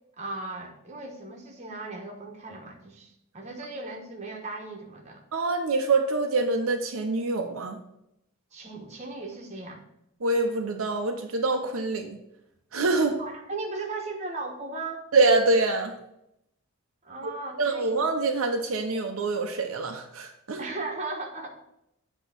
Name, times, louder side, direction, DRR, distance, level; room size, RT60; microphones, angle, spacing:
voice 1, 0.2-5.2 8.5-9.8 13.2-15.0 17.0-18.0 20.6-21.5, right 3 dB, 30° right, 1 dB, 1.1 m, -37 dB
voice 2, 5.3-7.8 10.2-12.2 12.7-13.2 15.1-15.9 17.2-17.3 17.6-20.6, right 3 dB, 70° right, 3 dB, 0.7 m, -25 dB
8.0 x 3.0 x 6.0 m, 0.81 s
head